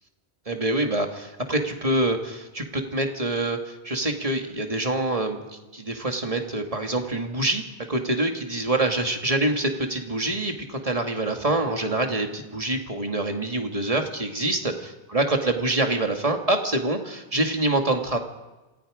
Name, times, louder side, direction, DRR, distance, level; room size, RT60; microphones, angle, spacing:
voice 1, 0.5-7.6 7.9-18.2, right 2 dB, 35° right, 4 dB, 2.2 m, -26 dB
27.5 x 19.0 x 5.1 m, 1.1 s
omnidirectional pair, 1.1 m